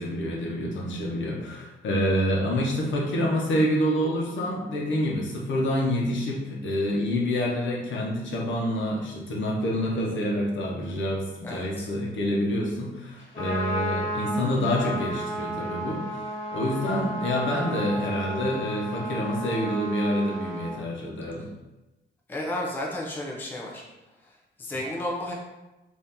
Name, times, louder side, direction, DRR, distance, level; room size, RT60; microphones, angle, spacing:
voice 1, 0.0-16.0 16.5-21.5, equal, 70° left, -2 dB, 0.8 m, -27 dB
voice 2, 11.4-11.9 22.3-23.8 24.6-25.3, left 1 dB, 10° left, -2 dB, 0.4 m, -32 dB
Trumpet, 13.2-20.8, equal, 35° left, 1.2 m, -33 dB
2.8 x 2.6 x 3.5 m, 1.0 s
wide cardioid pair, 145°, 20 cm